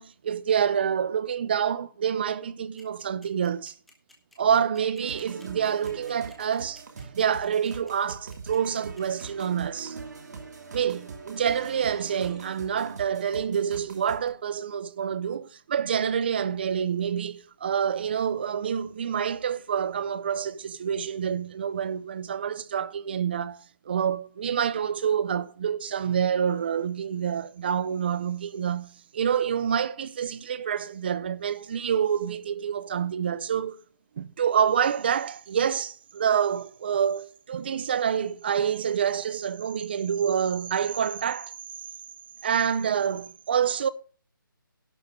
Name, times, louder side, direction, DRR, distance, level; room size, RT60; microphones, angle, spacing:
voice 1, 0.0-3.7 4.4-10.0 10.7-33.8 34.2-41.5 42.4-43.9, right 8 dB, 30° right, 0.6 m, -27 dB
sound 1, 2.8-9.4, left 2 dB, ahead, 1.3 m, -56 dB
sound 2, 5.0-14.3, right 4 dB, 50° right, 2.5 m, -42 dB
11.5 x 6.2 x 6.7 m
hypercardioid pair, 170°, 12 cm